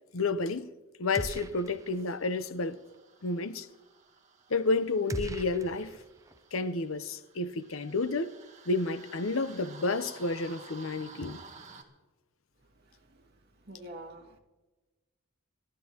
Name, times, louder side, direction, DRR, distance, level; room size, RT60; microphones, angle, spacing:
voice 1, 0.1-0.7 1.0-2.8 3.2-3.7 4.5-6.0 6.5-8.3 8.7-11.4, left 3 dB, 70° left, 0.8 m, -30 dB
sound 1, 1.1-11.8, right 4 dB, 35° right, 1.9 m, -54 dB
sound 2, 1.2-2.0 2.3-2.4 5.1-6.4, right 2 dB, 15° right, 0.5 m, -39 dB
voice 2, 13.7-14.4, right 1 dB, 55° right, 2.1 m, -45 dB
28.0 x 12.5 x 2.9 m
head